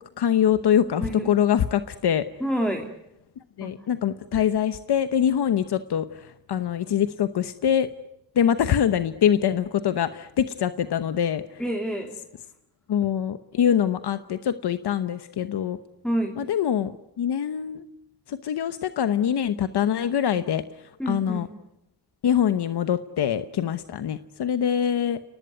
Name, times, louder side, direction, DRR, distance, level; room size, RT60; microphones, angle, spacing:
voice 1, 0.2-2.3 3.6-7.9 8.3-11.6 12.9-15.8 16.4-16.9 17.2-17.8 18.3-21.5 22.2-25.2, left 9 dB, 90° left, 11 dB, 1.0 m, -24 dB
voice 2, 2.4-2.9 3.6-3.7 11.6-12.1 16.0-16.4 21.0-21.4, equal, ahead, 3 dB, 3.0 m, -27 dB
29.5 x 19.0 x 9.4 m, 0.85 s
cardioid pair, 85°, 38 cm